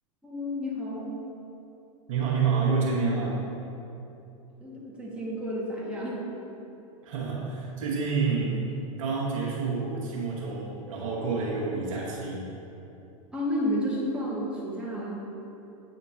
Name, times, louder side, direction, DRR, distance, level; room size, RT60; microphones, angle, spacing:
voice 1, 0.2-1.1 4.6-6.2 13.3-15.2, equal, 5° right, -6 dB, 1.5 m, -31 dB
voice 2, 2.1-3.5 7.0-8.6 9.0-12.5, right 4 dB, 70° right, -4 dB, 1.3 m, -28 dB
8.2 x 4.3 x 2.8 m, 2.8 s
hypercardioid pair, 95°, 17 cm